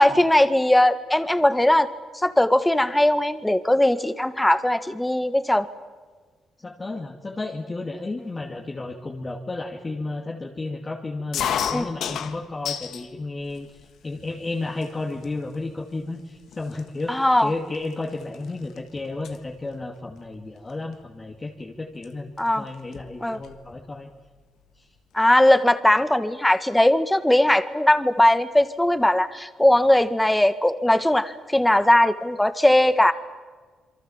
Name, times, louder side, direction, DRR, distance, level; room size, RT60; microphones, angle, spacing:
voice 1, 0.0-1.9 2.2-5.7 11.7-11.8 17.1-17.5 22.4-22.6 23.2-23.4 25.1-33.1, left 1 dB, 10° left, 11 dB, 1.7 m, -19 dB
voice 2, 6.6-13.7 14.0-24.1, left 2 dB, 25° left, 0 dB, 2.5 m, -32 dB
sound 1, 11.3-13.1 13.5-14.2 14.8-14.9 15.2-15.6 16.2-16.3 16.5-18.8 19.0-19.4 20.7-20.9 22.0-22.1 22.4-22.5 22.7-23.6, left 8 dB, 70° left, 1.7 m, -31 dB
28.0 x 23.0 x 7.3 m, 1.4 s
cardioid pair, 90°, 0 cm